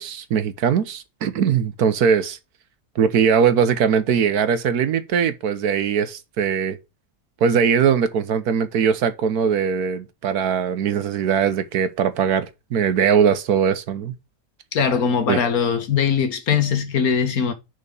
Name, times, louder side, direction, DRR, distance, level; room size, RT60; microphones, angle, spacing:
voice 1, 0.0-2.4 2.9-6.8 7.4-14.1 15.3-15.4, right 7 dB, 75° right, 1.4 m, -20 dB
voice 2, 14.7-17.5, left 6 dB, 65° left, 1.7 m, -21 dB
6.8 x 4.8 x 6.8 m
omnidirectional pair, 1.7 m